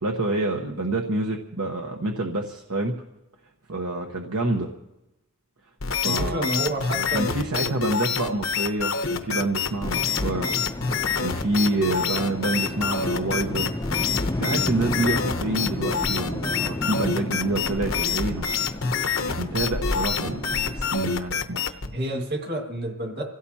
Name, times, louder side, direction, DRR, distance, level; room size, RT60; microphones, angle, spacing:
voice 1, 0.0-2.9 3.7-4.7 6.0-6.5 6.9-10.5 11.2-13.8 14.3-18.7 19.3-21.7, right 2 dB, 90° right, 2 dB, 1.2 m, -27 dB
sound 1, 5.8-21.9, left 6 dB, 70° left, 0.9 m, -27 dB
voice 2, 6.0-7.7 21.9-23.2, right 1 dB, 50° right, 3 dB, 2.0 m, -29 dB
sound 2, 9.8-21.1, left 1 dB, 15° left, 0.5 m, -32 dB
26.5 x 16.5 x 2.9 m, 0.92 s
head